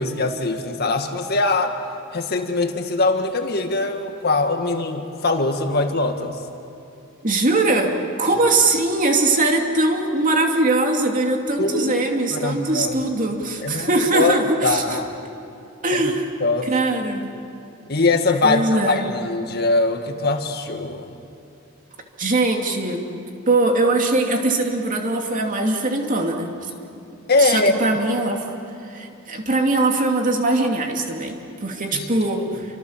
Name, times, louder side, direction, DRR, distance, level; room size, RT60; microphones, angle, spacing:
voice 1, 0.0-1.8 2.1-6.4 11.6-11.9 12.3-13.0 13.6-15.1 15.9-16.0 16.4-16.7 17.9-21.1 27.3-27.9 31.9-32.1, left 3 dB, 55° left, 5 dB, 1.9 m, -22 dB
voice 2, 7.2-7.9 8.2-15.0 15.8-16.3 16.7-17.3 18.4-19.1 22.2-23.0 23.5-26.5 27.4-28.6 28.9-32.5, right 2 dB, 40° right, 2 dB, 2.7 m, -21 dB
28.0 x 25.5 x 7.4 m, 2.7 s
head